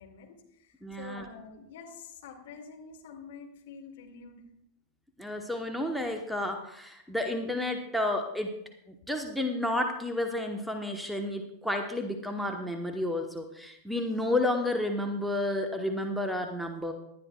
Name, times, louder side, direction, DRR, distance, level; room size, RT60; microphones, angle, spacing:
voice 1, 0.0-4.4, left 6 dB, 55° left, 1 dB, 2.3 m, -47 dB
voice 2, 0.8-1.2 5.2-8.6 8.9-16.9, left 1 dB, ahead, 5 dB, 1.1 m, -31 dB
18.5 x 11.0 x 2.3 m, 0.76 s
figure-of-eight pair, 90°, 0 cm